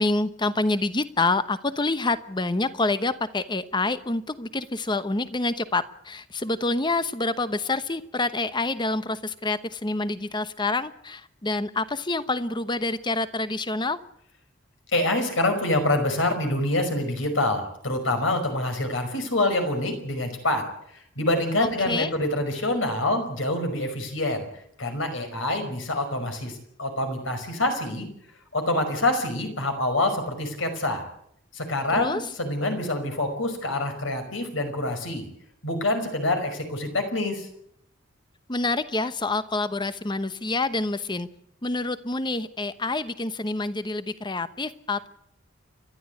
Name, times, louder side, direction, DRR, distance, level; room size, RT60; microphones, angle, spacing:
voice 1, 0.0-14.0 21.6-22.1 31.9-32.2 38.5-41.3 41.6-45.1, left 2 dB, 25° left, 12 dB, 1.0 m, -27 dB
voice 2, 14.9-20.6 20.9-24.5 24.8-28.1 28.5-31.0 31.5-35.3 35.6-37.5, left 1 dB, 70° left, 6 dB, 5.3 m, -26 dB
30.0 x 12.5 x 8.3 m, 0.73 s
head